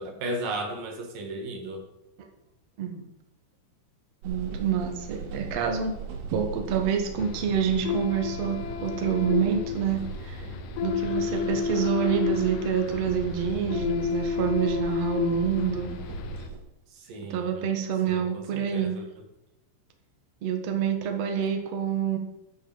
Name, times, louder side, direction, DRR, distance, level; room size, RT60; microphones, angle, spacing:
voice 1, 0.0-1.8 11.0-11.5 16.9-17.6 18.1-19.0, right 1 dB, 55° right, 3 dB, 3.1 m, -35 dB
sound 1, 4.2-16.6, right 6 dB, 70° right, 4.2 m, -39 dB
voice 2, 4.2-5.9 6.3-10.5 10.8-15.9 17.3-19.0 20.4-22.2, right 7 dB, 90° right, 4 dB, 1.4 m, -27 dB
sound 2, 7.2-16.5, left 6 dB, 75° left, 2.5 m, -31 dB
12.0 x 8.0 x 7.2 m, 0.87 s
omnidirectional pair, 5.6 m